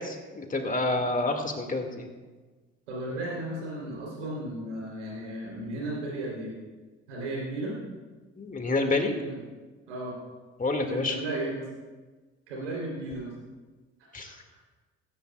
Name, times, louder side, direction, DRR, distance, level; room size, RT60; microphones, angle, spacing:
voice 1, 0.3-2.1 8.4-9.1 10.6-11.2 14.1-14.3, left 2 dB, 25° left, 4 dB, 2.1 m, -28 dB
voice 2, 2.9-6.5 7.1-7.8 9.1-9.4 9.9-10.2 10.8-11.7 12.5-13.3 14.0-14.4, right 1 dB, 85° right, -3 dB, 3.5 m, -35 dB
16.0 x 15.0 x 2.4 m, 1.3 s
hypercardioid pair, 55°, 34 cm